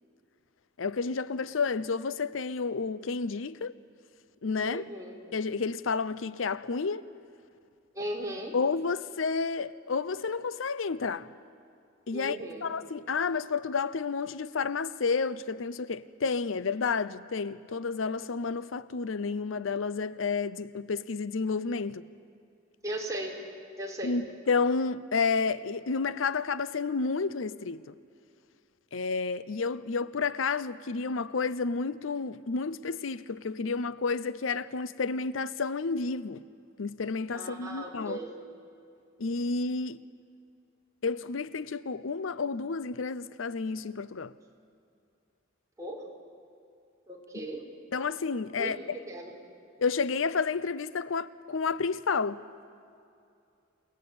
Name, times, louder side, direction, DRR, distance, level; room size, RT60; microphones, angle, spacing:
voice 1, 0.8-3.7 4.4-4.8 5.3-7.1 8.5-11.3 12.1-22.1 24.0-27.9 28.9-36.4 36.8-38.2 39.2-40.0 41.0-44.3 47.9-48.8 49.8-52.4, left 4 dB, 90° left, 0.6 m, -30 dB
voice 2, 4.6-5.2 7.9-8.6 12.1-12.7 22.8-23.5 23.8-24.1 37.3-38.4 45.8-46.0 47.1-47.7 48.5-49.3, right 1 dB, 15° right, 4.3 m, -37 dB
28.5 x 19.5 x 8.7 m
head